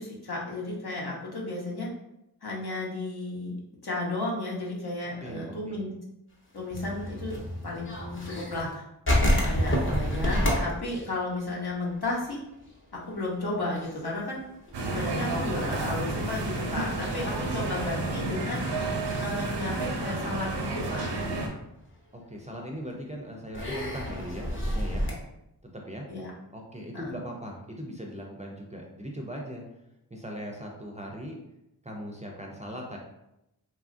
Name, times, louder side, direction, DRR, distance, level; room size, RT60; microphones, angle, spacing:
voice 1, 0.0-1.9 2.4-3.5 3.8-5.9 6.5-7.4 7.6-8.8 9.1-12.4 13.1-14.4 14.8-18.6 19.2-21.1 26.1-26.3 26.9-27.2, left 2 dB, 65° left, -3 dB, 0.8 m, -33 dB
voice 2, 5.2-5.8 17.0-17.6 22.1-25.1 25.7-26.1 26.5-29.6 30.1-31.3 31.8-33.0, equal, 20° right, 0 dB, 0.4 m, -39 dB
sound 1, 6.6-8.7 9.1-12.3 12.6-12.7 13.1-13.4 13.7-17.1 17.9-18.0 19.1-19.3 19.8-20.5 21.0-21.1 22.4-22.5 23.5-25.1, equal, 30° left, 0.7 m, -29 dB
sound 2, 14.7-21.5, right 2 dB, 85° right, 0.6 m, -31 dB
2.9 x 2.4 x 2.5 m, 0.85 s
wide cardioid pair, 55°, 41 cm